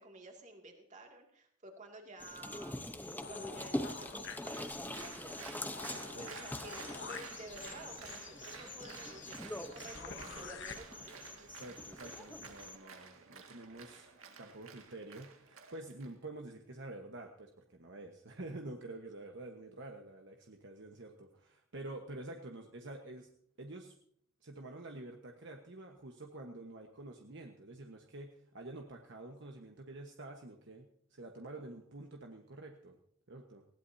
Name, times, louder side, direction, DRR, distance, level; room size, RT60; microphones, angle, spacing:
voice 1, 0.0-2.9 3.3-5.5 6.2-11.5, right 2 dB, 35° right, 2 dB, 2.4 m, -52 dB
sound 1, 2.2-12.8, left 1 dB, 10° left, 0.9 m, -44 dB
sound 2, 3.2-4.9 5.3-5.4 5.6-10.7, left 6 dB, 60° left, 1.2 m, -49 dB
Applause, 4.5-16.1, right 5 dB, 80° right, 2.0 m, -52 dB
voice 2, 11.4-14.1 14.4-23.3 23.6-23.9 24.4-33.0 33.3-33.6, right 2 dB, 60° right, 2 dB, 1.3 m, -48 dB
19.5 x 16.5 x 2.8 m, 0.64 s
head